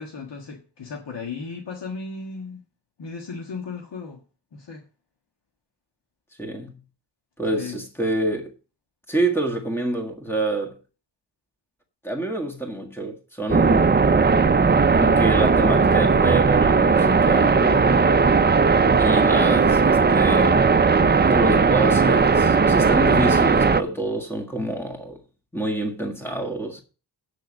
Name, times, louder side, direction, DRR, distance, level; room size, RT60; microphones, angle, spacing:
voice 1, 0.0-2.6 3.0-4.2 4.5-4.8 7.5-7.8 17.6-18.1 18.8-19.0, left 4 dB, 80° left, 1.6 m, -35 dB
voice 2, 6.4-6.8 7.4-8.5 9.1-10.8 12.0-14.0 14.9-17.7 19.0-20.8 21.3-25.2 25.5-26.8, right 2 dB, 5° left, 1.6 m, -27 dB
sound 1, 13.5-23.8, right 4 dB, 25° right, 0.5 m, -17 dB
8.4 x 6.3 x 6.2 m
wide cardioid pair, 145°, 42 cm